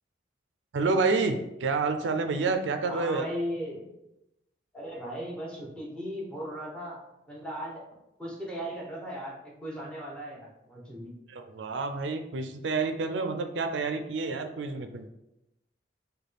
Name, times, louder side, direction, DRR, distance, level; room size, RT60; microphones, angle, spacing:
voice 1, 0.7-3.3 11.3-15.1, right 4 dB, 80° right, 7 dB, 0.4 m, -29 dB
voice 2, 2.8-3.9 4.7-7.0 7.3-7.8 8.2-11.1, equal, 5° left, -3 dB, 0.9 m, -37 dB
6.4 x 2.2 x 3.3 m, 0.89 s
head